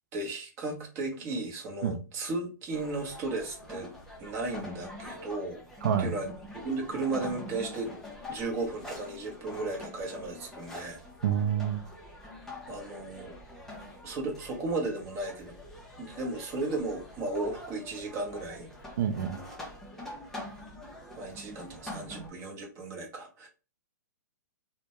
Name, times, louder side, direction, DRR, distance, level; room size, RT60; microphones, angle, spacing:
voice 1, 0.1-3.9 4.2-5.6 6.0-6.3 6.6-8.0 8.3-11.0 12.7-13.4 14.0-15.5 16.0-18.7 21.2-23.5, right 2 dB, 25° right, 0 dB, 0.8 m, -35 dB
sound 1, 2.7-22.3, left 1 dB, 5° left, 0.6 m, -44 dB
voice 2, 5.8-6.1 11.2-11.9 19.0-19.4, right 8 dB, 70° right, 7 dB, 0.4 m, -27 dB
2.1 x 2.1 x 2.9 m, 0.33 s
hypercardioid pair, 150°, 10 cm